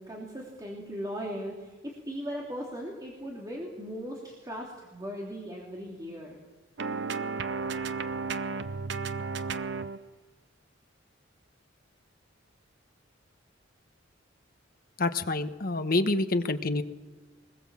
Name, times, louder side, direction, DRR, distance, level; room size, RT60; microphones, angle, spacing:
voice 1, 0.0-6.4, equal, 20° right, -2 dB, 2.9 m, -38 dB
sound 1, 6.8-10.0, right 4 dB, 60° right, 0.8 m, -33 dB
voice 2, 15.0-16.8, left 2 dB, 45° left, 9 dB, 1.1 m, -27 dB
23.0 x 20.5 x 7.4 m, 1.3 s
head